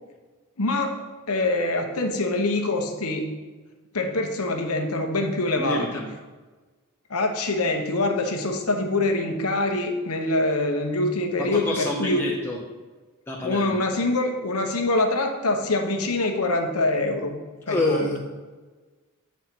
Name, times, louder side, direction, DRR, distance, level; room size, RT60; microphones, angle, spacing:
voice 1, 0.6-1.0 1.3-3.3 3.9-5.9 7.1-12.3 13.4-17.3 17.7-18.1, left 2 dB, 85° left, 4 dB, 1.1 m, -24 dB
voice 2, 5.6-6.1 11.4-12.6 13.3-13.8 17.7-18.2, left 1 dB, 10° left, -4 dB, 0.8 m, -27 dB
8.0 x 4.3 x 6.0 m, 1.3 s
head